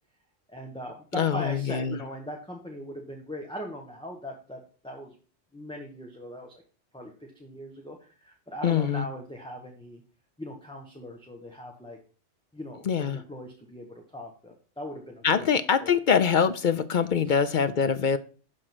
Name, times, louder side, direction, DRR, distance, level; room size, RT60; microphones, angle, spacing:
voice 1, 0.5-5.1 5.5-6.5 6.9-10.0 10.4-12.0 12.5-15.5 15.8-15.9 17.3-17.4, equal, 5° left, 1.2 m, -40 dB
voice 2, 1.1-2.0 8.6-9.0 12.9-13.2 15.2-18.2, left 7 dB, 55° left, 0.6 m, -24 dB
11.0 x 3.8 x 6.1 m
omnidirectional pair, 1.2 m